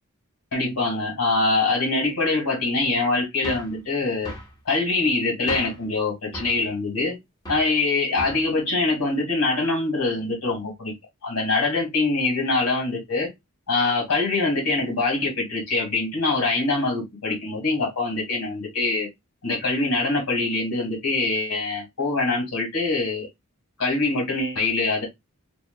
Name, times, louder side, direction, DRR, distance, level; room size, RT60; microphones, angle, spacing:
voice 1, 0.5-4.3 4.7-7.2 7.5-10.9 11.2-13.3 13.7-19.1 19.4-23.3 23.8-25.0, left 3 dB, 85° left, 1.8 m, -24 dB
sound 1, 3.4-3.8 4.2-4.5 5.5-5.9 6.3-6.6 7.4-7.7 8.2-8.5, equal, 15° left, 1.0 m, -36 dB
3.0 x 2.3 x 2.3 m
head